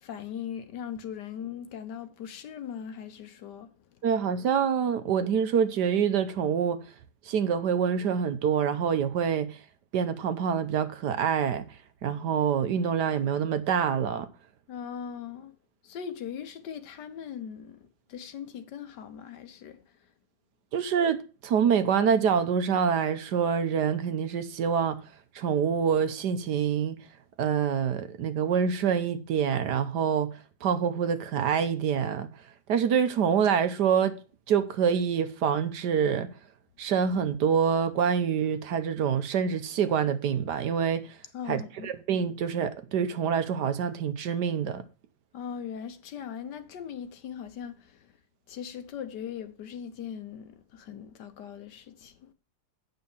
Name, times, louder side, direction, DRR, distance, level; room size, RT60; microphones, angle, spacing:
voice 1, 0.0-3.7 14.7-15.5 15.8-19.8 41.3-41.9 45.3-48.1 48.5-52.3, left 8 dB, 70° left, 1.5 m, -39 dB
voice 2, 4.0-6.8 7.3-9.6 9.9-11.7 12.0-14.3 20.7-25.0 25.3-27.0 27.4-30.3 30.6-32.3 32.7-34.2 34.5-36.3 36.8-41.1 41.5-44.8, right 7 dB, 70° right, 1.4 m, -26 dB
8.1 x 5.7 x 7.1 m
omnidirectional pair, 2.0 m